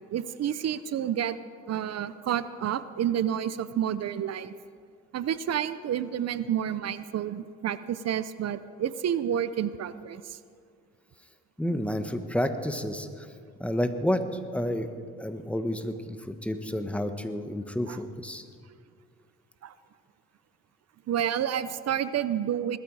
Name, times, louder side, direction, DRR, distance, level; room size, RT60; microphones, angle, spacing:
voice 1, 0.1-1.4 1.7-4.6 5.1-10.4 17.9-18.0 19.6-19.7 21.1-22.8, right 9 dB, 55° right, 14 dB, 0.6 m, -29 dB
voice 2, 11.6-13.3 13.6-14.2 14.5-14.9 15.2-18.4, left 1 dB, 5° left, 8 dB, 1.1 m, -30 dB
20.0 x 13.0 x 4.8 m, 2.2 s
cardioid pair, 90°, 30 cm